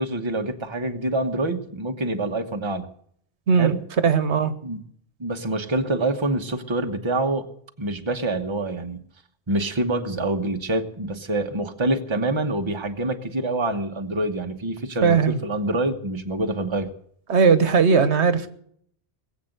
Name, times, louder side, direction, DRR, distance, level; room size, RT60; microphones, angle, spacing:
voice 1, 0.0-2.9 3.6-3.8 4.6-4.8 5.2-7.5 7.8-9.0 9.5-16.9, right 2 dB, 25° right, 5 dB, 1.1 m, -26 dB
voice 2, 4.0-4.5 15.0-15.4 17.3-18.5, right 5 dB, 90° right, 11 dB, 1.4 m, -18 dB
20.0 x 8.1 x 7.9 m, 0.64 s
omnidirectional pair, 1.1 m